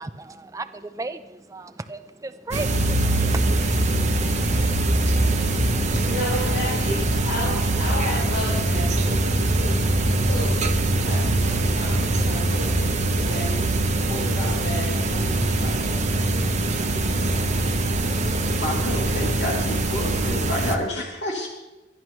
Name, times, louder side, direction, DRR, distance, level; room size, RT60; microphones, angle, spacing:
voice 1, 0.0-3.6, right 2 dB, 15° right, 10 dB, 0.5 m, -35 dB
sound 1, 2.5-20.8, right 2 dB, 40° right, 1.1 m, -22 dB
voice 2, 6.0-16.3, left 1 dB, 85° left, -8 dB, 4.8 m, -33 dB
voice 3, 18.6-21.3, left 1 dB, 65° left, -2 dB, 2.8 m, -29 dB
24.0 x 10.5 x 3.1 m, 1.0 s
head